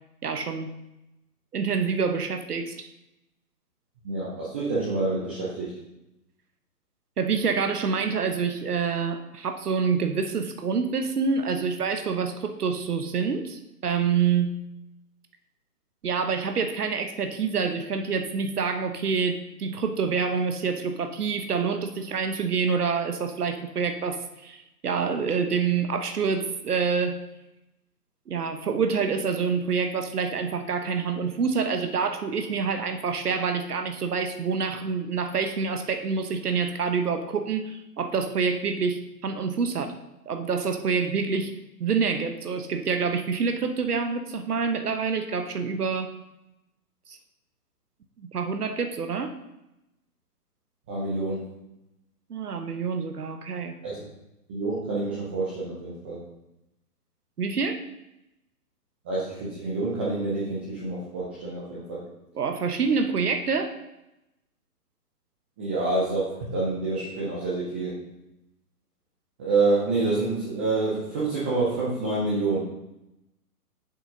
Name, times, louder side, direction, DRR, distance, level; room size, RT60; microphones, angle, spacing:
voice 1, 0.2-0.8 1.5-2.9 7.2-14.5 16.0-27.2 28.3-39.9 40.3-41.5 41.8-46.1 47.1-47.2 48.2-49.3 52.3-53.8 57.4-57.8 62.3-63.7, right 5 dB, 70° right, 7 dB, 1.1 m, -27 dB
voice 2, 4.0-5.7 50.9-51.5 53.8-54.1 54.5-56.2 59.0-62.0 65.6-68.0 69.4-72.6, right 3 dB, 10° right, -8 dB, 0.5 m, -27 dB
7.2 x 6.3 x 5.5 m, 0.90 s
figure-of-eight pair, 135°, 47 cm